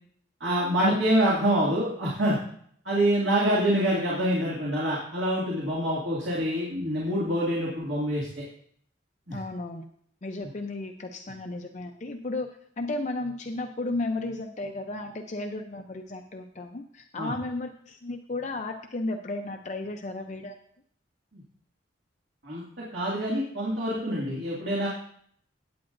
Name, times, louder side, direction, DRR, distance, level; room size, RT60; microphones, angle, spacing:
voice 1, 0.4-2.4 2.8-8.4 9.3-9.4 17.2-17.3 21.3-21.4 22.4-22.6 22.9-24.9, right 1 dB, 65° right, -5 dB, 2.3 m, -26 dB
voice 2, 9.3-9.9 10.2-12.5 12.8-20.6, left 2 dB, 40° left, 4 dB, 0.6 m, -33 dB
16.5 x 8.7 x 2.6 m, 0.65 s
head